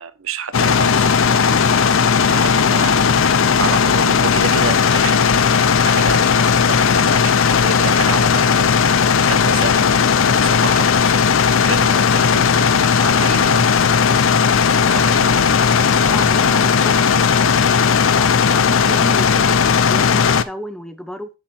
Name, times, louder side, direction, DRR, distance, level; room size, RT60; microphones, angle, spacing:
voice 1, 0.0-8.7 9.2-13.8 14.9-15.3, right 5 dB, 80° right, 0.8 m, -29 dB
sound 1, 0.5-20.4, left 6 dB, 70° left, 0.6 m, -15 dB
sound 2, 0.7-17.1, right 1 dB, 30° right, 2.6 m, -39 dB
voice 2, 16.0-17.6 18.1-21.3, equal, 5° left, 0.7 m, -33 dB
7.6 x 6.3 x 4.2 m
head